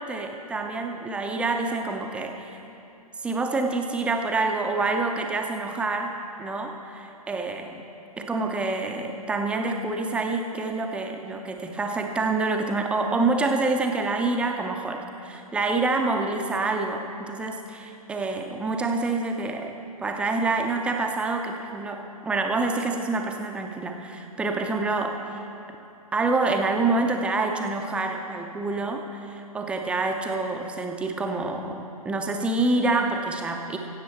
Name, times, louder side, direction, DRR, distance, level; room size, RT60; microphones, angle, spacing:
voice 1, 0.1-2.5 3.2-6.1 6.4-7.8 8.2-19.7 20.0-25.4 26.1-33.8, right 3 dB, 5° right, 3 dB, 0.5 m, -27 dB
16.0 x 7.5 x 4.3 m, 2.7 s
figure-of-eight pair, 120°, 20 cm